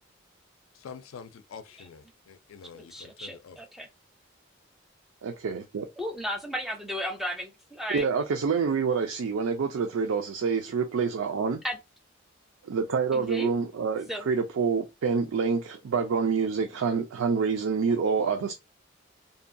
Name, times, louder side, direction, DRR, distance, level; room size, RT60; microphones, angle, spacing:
voice 1, 0.7-3.6, left 6 dB, 85° left, 0.4 m, -46 dB
voice 2, 2.9-3.9 6.0-8.0 11.6-11.8 13.1-13.5 14.1-14.2, equal, ahead, 0.4 m, -34 dB
voice 3, 5.2-5.9 7.9-11.6 12.6-18.5, right 5 dB, 90° right, 0.4 m, -27 dB
2.7 x 2.2 x 2.5 m
head